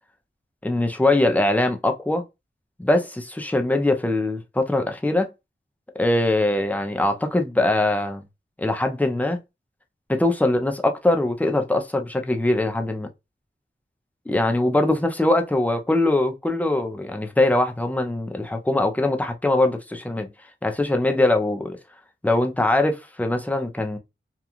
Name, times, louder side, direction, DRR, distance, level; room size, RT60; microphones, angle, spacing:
voice 1, 0.6-2.2 2.8-5.3 6.0-8.2 8.6-9.4 10.1-13.1 14.3-20.3 20.6-21.8 22.2-24.0, left 2 dB, 5° left, 0.5 m, -22 dB
2.9 x 2.3 x 2.4 m
wide cardioid pair, 60°, 21 cm